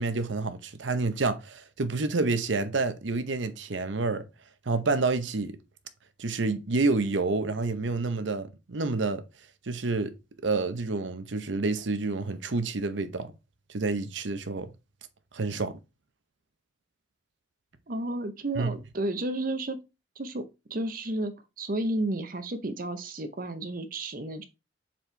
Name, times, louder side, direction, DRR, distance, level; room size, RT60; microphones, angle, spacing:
voice 1, 0.0-4.3 4.7-5.6 6.2-9.2 9.7-10.1 10.4-13.3 13.7-14.7 15.3-15.7 18.6-18.7, right 3 dB, 80° right, 0.8 m, -28 dB
voice 2, 17.9-19.8 20.2-24.4, right 1 dB, 50° right, 0.7 m, -32 dB
7.2 x 4.3 x 3.3 m
head